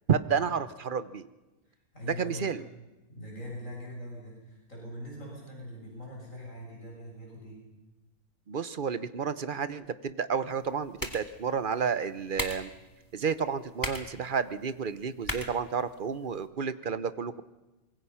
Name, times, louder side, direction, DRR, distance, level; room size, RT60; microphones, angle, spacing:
voice 1, 0.1-1.3 2.1-2.6 8.5-12.7 13.1-17.4, right 6 dB, 40° right, 13 dB, 0.9 m, -31 dB
voice 2, 1.9-2.5 3.1-7.6, equal, 60° left, -3 dB, 7.9 m, -42 dB
sound 1, 10.5-16.5, left 1 dB, 15° left, 2.0 m, -41 dB
25.0 x 22.0 x 5.7 m, 1.1 s
omnidirectional pair, 1.5 m